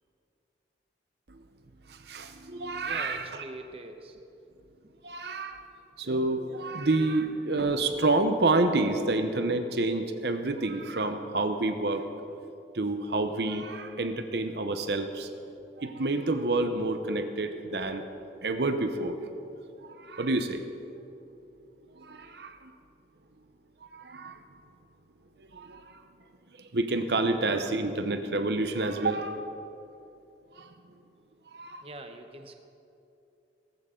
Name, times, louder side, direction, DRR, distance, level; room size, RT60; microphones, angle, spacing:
voice 1, 1.9-3.3 5.0-5.6 6.0-12.3 12.7-15.3 15.8-18.0 18.4-19.1 19.8-20.6 22.0-22.7 23.9-24.4 25.4-26.0 26.6-29.4 30.6-30.7 31.5-31.9, right 2 dB, 70° right, 8 dB, 0.9 m, -29 dB
voice 2, 2.8-4.2 4.8-5.0 31.8-32.5, right 2 dB, 35° right, 5 dB, 0.9 m, -43 dB
18.0 x 15.0 x 3.8 m, 2.8 s
head